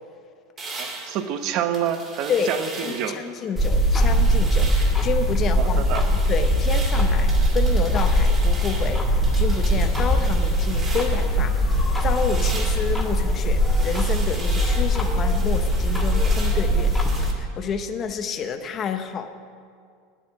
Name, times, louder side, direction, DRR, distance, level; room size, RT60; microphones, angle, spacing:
sound 1, 0.6-3.2 3.6-5.1 5.5-11.4 11.7-17.3, right 3 dB, 20° right, 2.0 m, -38 dB
voice 1, 0.8-3.2 5.6-6.1, right 9 dB, 45° right, 8 dB, 0.9 m, -28 dB
voice 2, 2.8-11.7 12.0-16.9 17.2-19.3, left 6 dB, 25° left, 7 dB, 0.7 m, -29 dB
sound 2, 3.6-17.3, equal, 5° left, 1.5 m, -21 dB
9.3 x 9.1 x 8.9 m, 2.1 s
supercardioid pair, 155°, 0 cm